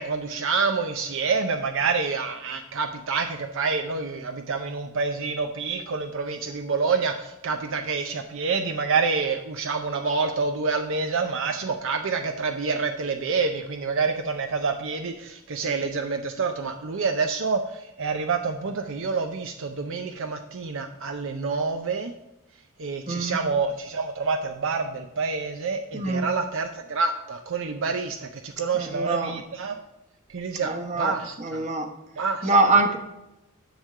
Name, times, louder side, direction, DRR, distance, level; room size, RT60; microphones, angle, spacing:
voice 1, 0.0-22.1 22.8-29.8 30.3-31.7 32.2-32.8, right 4 dB, 65° right, 6 dB, 0.6 m, -27 dB
voice 2, 23.1-23.4 25.9-26.3 28.7-29.3 30.6-31.1 31.4-31.9 32.4-33.0, right 2 dB, 35° right, 4 dB, 1.1 m, -23 dB
10.5 x 3.7 x 6.5 m, 0.92 s
head